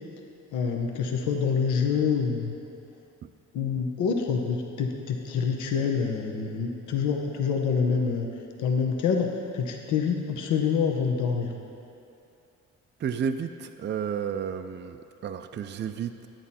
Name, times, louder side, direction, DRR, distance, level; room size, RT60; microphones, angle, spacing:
voice 1, 0.5-2.5 3.5-8.3 8.6-9.3 9.5-11.5, left 6 dB, 80° left, 2 dB, 1.0 m, -26 dB
voice 2, 13.0-16.3, right 7 dB, 35° right, 8 dB, 0.4 m, -32 dB
10.5 x 9.1 x 4.2 m, 2.7 s
cardioid pair, 90°, 30 cm